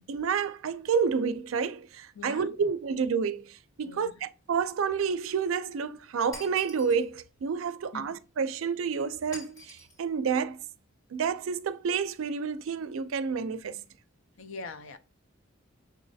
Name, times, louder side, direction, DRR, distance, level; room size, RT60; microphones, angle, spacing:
voice 1, 0.1-10.6 11.1-13.8, right 6 dB, 80° right, 0.4 m, -29 dB
voice 2, 2.2-2.5 3.8-4.1 7.9-8.0 14.4-15.0, left 3 dB, 75° left, 0.6 m, -42 dB
Shatter, 6.3-7.1 9.3-10.0, left 2 dB, 20° left, 1.7 m, -46 dB
6.5 x 3.1 x 2.6 m
head